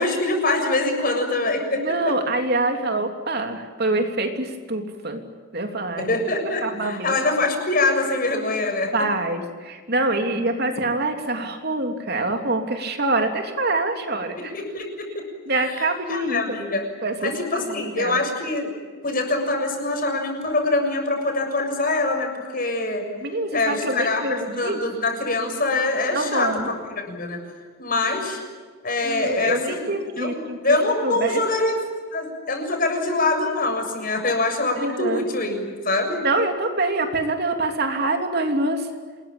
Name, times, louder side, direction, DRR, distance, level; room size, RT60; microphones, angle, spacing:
voice 1, 0.0-2.1 6.0-8.9 14.4-15.3 15.7-16.9 17.2-18.7 19.0-23.0 23.5-27.4 27.8-28.4 28.8-31.8 32.1-36.2, left 2 dB, 40° left, 3 dB, 7.0 m, -24 dB
voice 2, 1.7-5.2 5.5-6.1 6.6-7.2 8.9-14.5 15.5-16.6 17.0-18.2 23.2-24.8 26.1-26.7 29.0-30.8 31.0-31.4 34.8-35.2 36.2-38.9, right 2 dB, 50° right, 4 dB, 3.2 m, -25 dB
28.5 x 21.0 x 8.7 m, 1.5 s
head